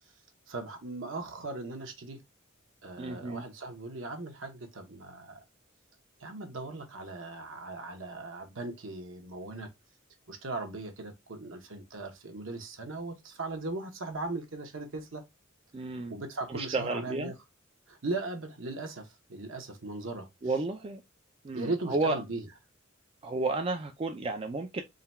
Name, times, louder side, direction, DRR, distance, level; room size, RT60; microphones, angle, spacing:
voice 1, 0.5-2.2 2.8-5.4 6.2-9.7 10.3-15.2 16.1-17.3 17.9-20.3 21.5-22.4, right 2 dB, 65° right, 1.0 m, -38 dB
voice 2, 3.0-3.4 15.7-16.1 16.5-17.3 20.4-21.0 21.4-22.2 23.2-24.8, right 3 dB, 30° right, 0.4 m, -32 dB
3.8 x 2.3 x 4.1 m
head